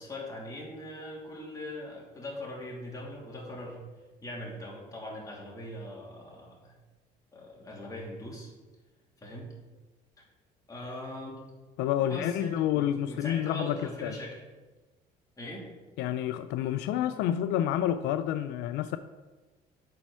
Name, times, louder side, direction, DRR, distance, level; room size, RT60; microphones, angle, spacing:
voice 1, 0.0-3.8 4.2-6.8 7.3-8.5 9.2-9.5 10.2-10.3 10.7-11.4 12.0-14.4 15.4-15.6, left 1 dB, 20° left, -4 dB, 2.8 m, -41 dB
voice 2, 11.8-14.1 16.0-19.0, left 11 dB, 85° left, 11 dB, 0.4 m, -29 dB
8.5 x 4.6 x 6.1 m, 1.2 s
cardioid pair, 110°, 17 cm